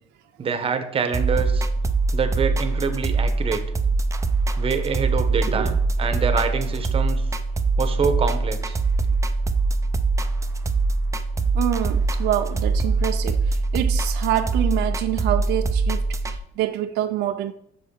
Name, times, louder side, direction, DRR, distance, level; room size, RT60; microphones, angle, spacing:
voice 1, 0.4-1.7 2.1-3.6 4.6-7.2 7.8-8.8, right 6 dB, 35° right, 0.9 m, -26 dB
sound 1, 1.1-16.4, right 3 dB, 20° right, 0.4 m, -23 dB
voice 2, 11.5-17.5, right 13 dB, 85° right, 0.4 m, -26 dB
6.9 x 5.9 x 3.7 m
cardioid pair, 110°, 17 cm